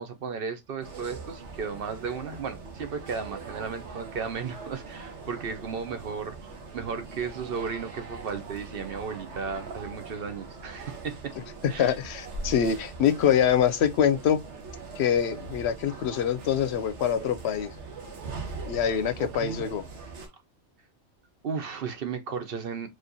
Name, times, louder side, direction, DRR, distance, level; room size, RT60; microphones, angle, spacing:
voice 1, 0.0-6.4 6.7-11.3 11.7-11.9 19.2-19.7 21.4-22.9, right 6 dB, 60° right, 0.8 m, -34 dB
sound 1, 0.8-20.3, right 4 dB, 80° right, 1.4 m, -41 dB
voice 2, 11.8-14.4 15.0-17.7 18.7-19.8, left 8 dB, 70° left, 0.8 m, -24 dB
4.3 x 3.1 x 2.6 m
omnidirectional pair, 1.2 m